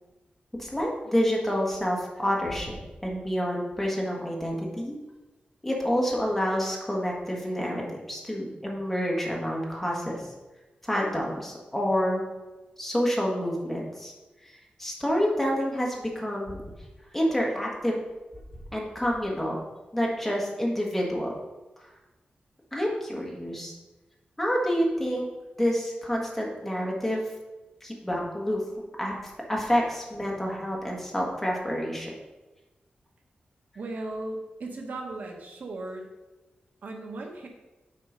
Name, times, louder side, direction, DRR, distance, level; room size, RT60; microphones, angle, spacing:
voice 1, 0.6-5.0 5.6-10.3 10.8-12.2 12.8-14.1 14.4-16.6 17.1-18.0 18.7-19.6 19.9-21.3 21.8-21.9 22.7-23.7 24.4-25.3 25.6-27.2 27.8-28.6 29.0-32.1, equal, 5° left, -2 dB, 1.6 m, -28 dB
voice 2, 33.7-36.1 36.8-37.5, right 2 dB, 65° right, 2 dB, 1.0 m, -36 dB
7.6 x 4.4 x 5.2 m, 1.1 s
wide cardioid pair, 145°, 3 cm